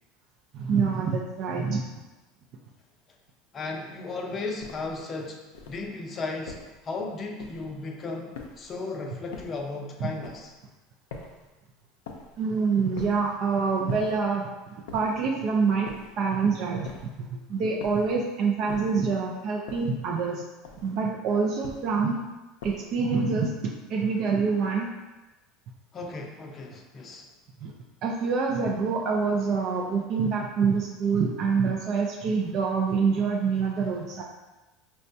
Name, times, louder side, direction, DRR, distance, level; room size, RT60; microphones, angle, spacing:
voice 1, 0.5-1.8 10.0-10.1 12.4-15.9 16.2-16.9 17.2-20.4 20.8-22.2 22.6-24.9 27.6-27.7 28.0-34.2, right 5 dB, 50° right, 0 dB, 0.4 m, -26 dB
voice 2, 3.5-10.5 25.9-27.3, left 3 dB, 30° left, 1 dB, 0.5 m, -35 dB
sound 1, 4.6-5.0 5.5-5.9 6.5-6.8 7.4-7.8 8.3-8.8 9.3-9.7 10.2-10.6 11.1-11.5 12.1-12.4 13.0-13.3 13.9-14.3 14.9-15.3 15.9-16.2 16.8-17.3 17.8-18.2 18.7-19.1 19.7-20.1 20.6-21.0 21.6-22.0 22.6-23.0, left 4 dB, 90° left, 0.4 m, -44 dB
4.2 x 2.2 x 2.6 m, 1.1 s
supercardioid pair, 125°, 0 cm